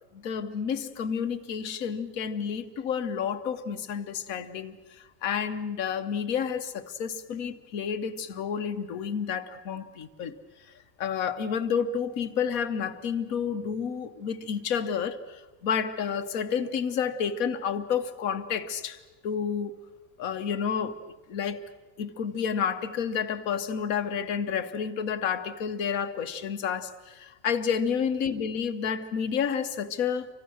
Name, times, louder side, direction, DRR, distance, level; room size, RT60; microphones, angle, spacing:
voice 1, 0.1-10.4 11.0-19.8 20.2-21.0 21.3-21.6 22.0-30.3, left 7 dB, 80° left, 9 dB, 1.4 m, -30 dB
29.5 x 25.0 x 6.3 m, 1.2 s
omnidirectional pair, 1.5 m